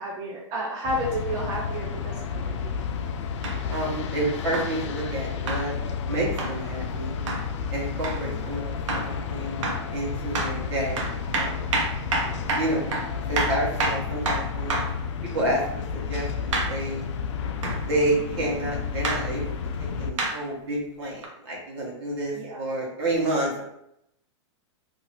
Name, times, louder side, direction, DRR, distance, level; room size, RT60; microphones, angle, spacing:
voice 1, 0.0-3.0 8.2-8.5 22.3-22.6, right 1 dB, 20° right, -2 dB, 0.3 m, -32 dB
sound 1, 0.8-20.1, left 6 dB, 70° left, 0.4 m, -31 dB
sound 2, 3.4-3.6 4.5-4.7 5.5-5.7 6.4-6.6 7.3-7.4 8.0-8.2 8.9-9.1 9.6-9.9 10.3-10.6 11.0-15.0 16.5-16.8 17.6-17.8 19.0-19.2 20.2-20.4 21.2-21.3, right 2 dB, 80° right, 0.8 m, -28 dB
voice 2, 3.7-5.8 6.1-7.2 7.7-11.0 11.3-11.8 12.5-12.9 13.3-14.8 15.3-15.6 15.9-17.0 17.7-23.6, right 1 dB, 55° right, -2 dB, 1.2 m, -29 dB
2.7 x 2.7 x 3.0 m, 0.78 s
supercardioid pair, 165°, 16 cm